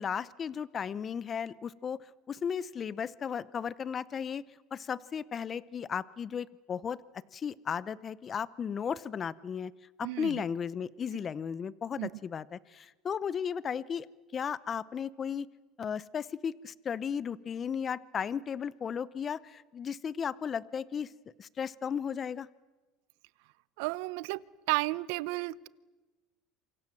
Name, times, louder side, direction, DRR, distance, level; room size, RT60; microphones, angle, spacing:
voice 1, 0.0-4.4 4.7-7.0 7.3-9.7 10.0-14.1 14.3-15.5 15.8-21.1 21.4-22.5, left 7 dB, 30° left, 20 dB, 0.7 m, -35 dB
voice 2, 10.0-10.4 12.0-12.1 23.8-24.4 24.7-25.7, right 22 dB, 80° right, 20 dB, 0.8 m, -32 dB
27.5 x 25.0 x 7.6 m, 1.2 s
cardioid pair, 130°, 0 cm